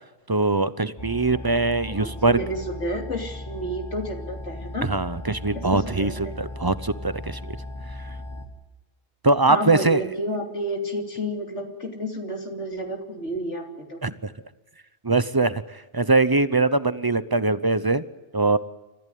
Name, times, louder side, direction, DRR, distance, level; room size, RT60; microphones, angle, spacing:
voice 1, 0.3-2.4 4.8-7.5 9.2-10.0 14.0-14.3 15.0-15.6 15.9-18.0 18.3-18.6, right 3 dB, 25° right, 14 dB, 0.7 m, -22 dB
sound 1, 1.0-8.5, left 2 dB, 25° left, 2.9 m, -37 dB
voice 2, 1.9-4.9 5.5-6.3 9.5-14.0, equal, 85° left, 3 dB, 3.4 m, -31 dB
28.5 x 14.5 x 9.3 m, 1.1 s
omnidirectional pair, 1.2 m